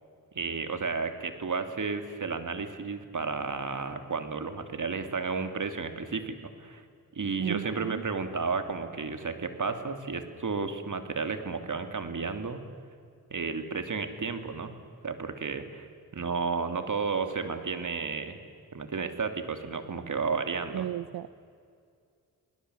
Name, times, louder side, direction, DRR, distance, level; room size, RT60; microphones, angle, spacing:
voice 1, 0.3-6.8 7.1-12.6 13.3-14.7 15.0-15.9 16.1-18.4 18.7-20.9, right 4 dB, 55° right, 8 dB, 2.7 m, -32 dB
voice 2, 7.4-8.0 20.7-21.3, right 11 dB, 75° right, 15 dB, 0.7 m, -34 dB
28.5 x 20.0 x 8.0 m, 2.3 s
supercardioid pair, 45°, 38 cm